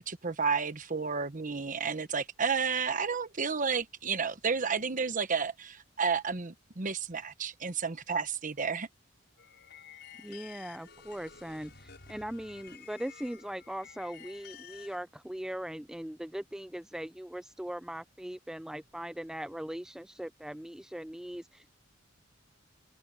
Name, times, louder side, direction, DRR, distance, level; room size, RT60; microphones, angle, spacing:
voice 1, 0.0-8.9, right 5 dB, 40° right, 1.1 m, -31 dB
sound 1, 9.4-15.0, left 7 dB, 60° left, 6.2 m, -52 dB
voice 2, 10.2-21.7, right 1 dB, 5° right, 0.3 m, -40 dB
open air
head